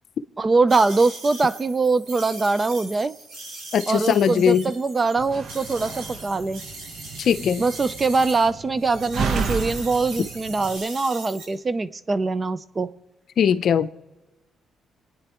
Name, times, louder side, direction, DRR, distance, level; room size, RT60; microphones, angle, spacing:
voice 1, 0.4-3.1 3.9-6.6 7.6-12.9, right 3 dB, 30° right, 0.5 m, -22 dB
sound 1, 0.7-8.5 8.8-11.4, right 2 dB, 80° right, 5.4 m, -39 dB
voice 2, 3.7-4.7 7.2-7.6 13.4-13.9, left 8 dB, 60° left, 0.6 m, -20 dB
Slam, 5.2-10.8, right 5 dB, 60° right, 1.0 m, -32 dB
29.0 x 9.7 x 3.0 m
cardioid pair, 90°, 0 cm